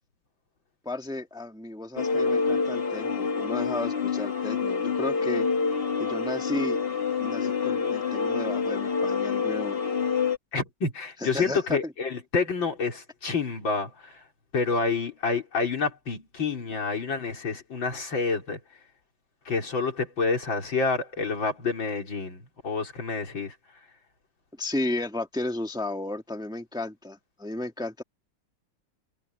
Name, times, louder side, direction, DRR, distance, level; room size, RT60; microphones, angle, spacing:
voice 1, 0.8-5.5 6.0-6.9 7.2-9.8 11.2-11.9 24.6-28.0, left 2 dB, ahead, 1.5 m, -33 dB
sound 1, 2.0-10.4, left 5 dB, 35° left, 1.3 m, -27 dB
voice 2, 10.5-14.2 14.5-18.6 19.5-23.5, left 4 dB, 85° left, 4.8 m, -28 dB
omnidirectional pair, 2.1 m